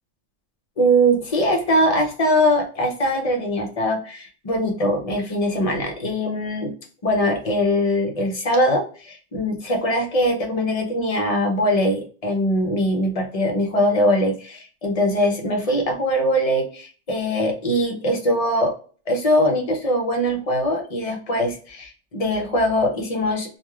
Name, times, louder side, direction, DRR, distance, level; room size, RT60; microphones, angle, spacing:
voice 1, 0.8-6.7 7.0-18.7 19.1-23.6, equal, 40° left, 2 dB, 0.5 m, -22 dB
3.1 x 2.3 x 2.3 m, 0.40 s
omnidirectional pair, 1.3 m